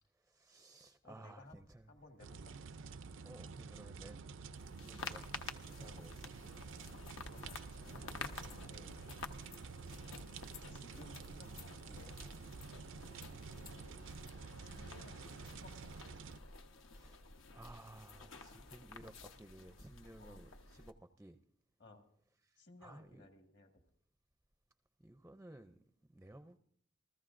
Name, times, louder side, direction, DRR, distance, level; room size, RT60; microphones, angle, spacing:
voice 1, 0.1-1.9 3.2-4.2 4.8-5.3 5.6-6.3 16.9-21.4 22.4-23.3 25.0-26.6, right 1 dB, 10° right, 9 dB, 0.4 m, -56 dB
voice 2, 1.0-2.6 5.8-6.0 7.3-8.9 10.7-12.2 13.9-14.1 14.5-16.1 18.4-18.7 20.2-20.4 21.8-22.1 22.6-23.9, left 2 dB, 60° left, 4 dB, 1.7 m, -59 dB
sound 1, 2.2-16.4, right 5 dB, 70° right, 0.5 m, -50 dB
sound 2, 4.5-20.9, left 4 dB, 80° left, 0.9 m, -51 dB
28.5 x 14.0 x 2.5 m, 0.65 s
head